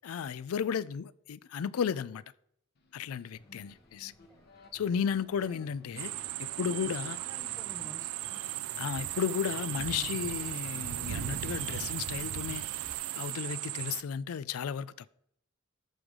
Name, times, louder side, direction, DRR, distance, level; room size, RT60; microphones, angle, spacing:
voice 1, 0.0-2.2 2.9-4.1 4.7-6.1 6.4-7.2 8.8-12.6 13.2-15.1, left 7 dB, 85° left, 0.4 m, -34 dB
sound 1, 2.7-11.7, left 1 dB, 50° left, 1.0 m, -56 dB
sound 2, 3.3-13.0, equal, 15° left, 1.6 m, -59 dB
sound 3, 6.0-14.0, right 14 dB, 90° right, 0.4 m, -36 dB
voice 2, 6.3-8.3 9.0-10.2, right 1 dB, 15° right, 0.5 m, -51 dB
14.0 x 4.9 x 3.7 m
head